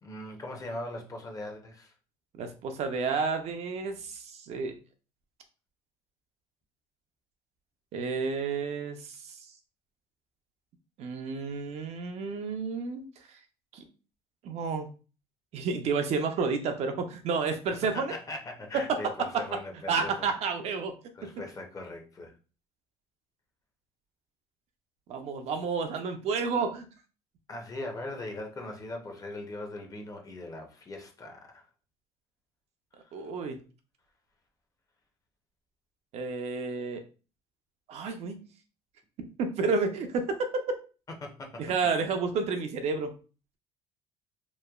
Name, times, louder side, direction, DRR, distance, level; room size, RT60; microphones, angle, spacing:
voice 1, 0.0-1.9 17.9-20.3 21.1-22.3 27.5-31.7 33.0-33.1 41.2-41.6, left 2 dB, 25° left, 0.7 m, -40 dB
voice 2, 2.3-4.7 7.9-9.3 11.0-13.1 13.7-13.8 14.4-14.9 15.5-18.1 18.7-18.8 19.3-19.4 19.9-20.9 25.1-26.9 33.1-33.6 36.1-37.0 37.9-38.4 39.2-40.4 41.6-43.1, right 4 dB, 60° right, 0.5 m, -30 dB
3.0 x 2.1 x 2.3 m
cardioid pair, 110°, 13 cm